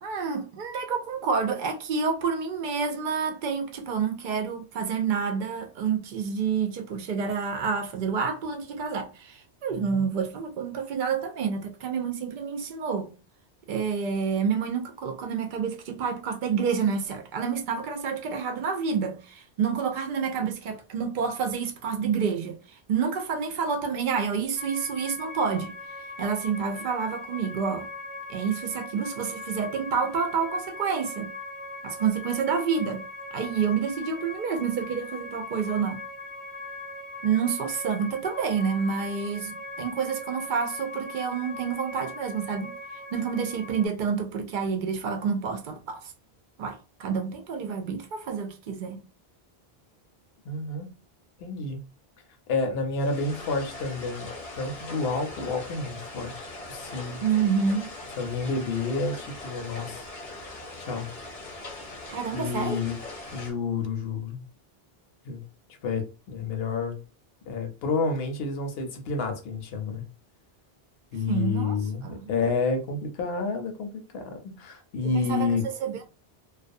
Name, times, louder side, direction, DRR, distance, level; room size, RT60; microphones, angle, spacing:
voice 1, 0.0-13.2 13.7-27.9 28.3-31.3 31.8-33.0 33.3-36.1 37.2-46.0 46.6-49.0 57.2-57.9 62.1-62.8 71.3-71.8 72.0-72.3 75.1-76.0, right 6 dB, 60° right, 0.6 m, -28 dB
voice 2, 9.7-10.1 50.4-50.9 51.4-51.8 52.5-54.3 54.6-57.2 58.2-60.1 60.8-61.1 62.3-63.0 63.3-64.4 65.2-65.4 65.8-67.0 67.5-70.0 71.1-75.6, left 4 dB, 75° left, 0.8 m, -30 dB
sound 1, 24.6-43.9, left 2 dB, ahead, 0.6 m, -40 dB
sound 2, 53.0-63.5, left 2 dB, 40° left, 0.7 m, -41 dB
2.3 x 2.2 x 2.5 m
omnidirectional pair, 1.0 m